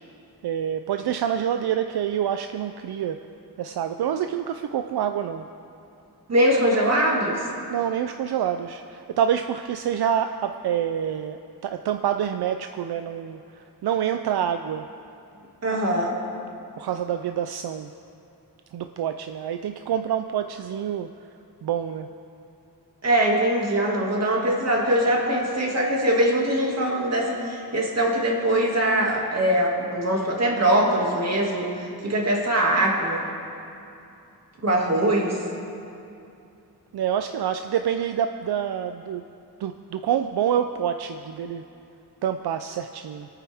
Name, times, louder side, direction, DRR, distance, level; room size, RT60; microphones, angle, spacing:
voice 1, 0.4-3.2 3.6-5.5 7.7-14.9 16.8-17.9 18.7-21.1 21.6-22.1 36.9-39.2 39.6-41.6 42.2-43.3, right 9 dB, 75° right, 8 dB, 0.6 m, -27 dB
voice 2, 6.3-7.5 15.6-16.2 23.0-33.2 34.6-35.4, right 1 dB, 40° right, -2 dB, 2.3 m, -22 dB
26.5 x 9.3 x 3.6 m, 2.7 s
wide cardioid pair, 160°, 39 cm